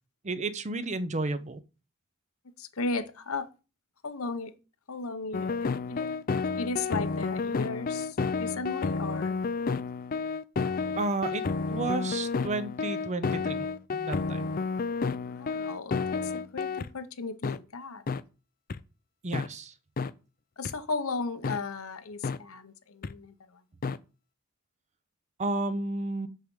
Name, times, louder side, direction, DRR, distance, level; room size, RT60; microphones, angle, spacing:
voice 1, 0.2-1.6 11.0-11.4 11.7-13.6 13.9-14.5 19.2-19.7 25.4-26.3, right 2 dB, 35° right, 0.6 m, -32 dB
voice 2, 2.6-3.5 4.0-4.5 4.9-6.1 6.6-9.4 15.2-18.0 20.6-23.6, left 3 dB, 80° left, 1.0 m, -35 dB
sound 1, 5.3-16.9 17.4-17.6 18.1-18.2 18.7-18.8 19.3-19.5 20.0-20.1 20.6-20.7 21.4-21.6 22.2-22.4 23.0-23.1 23.8-24.0, left 4 dB, 40° left, 0.4 m, -31 dB
6.5 x 5.0 x 6.3 m
head